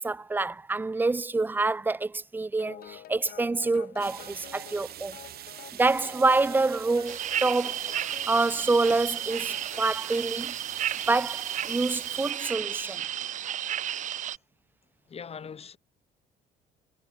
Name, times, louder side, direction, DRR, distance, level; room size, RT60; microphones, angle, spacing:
voice 1, 0.0-5.2 5.7-10.5 11.1-13.0, right 3 dB, 10° right, 0.3 m, -27 dB
sound 1, 2.6-10.0, left 12 dB, 60° left, 4.1 m, -48 dB
sound 2, 4.0-12.3, right 13 dB, 65° right, 2.2 m, -44 dB
sound 3, 7.1-14.4, right 11 dB, 45° right, 0.6 m, -33 dB
voice 2, 15.1-15.8, left 6 dB, 35° left, 4.2 m, -41 dB
cardioid pair, 110°, 17 cm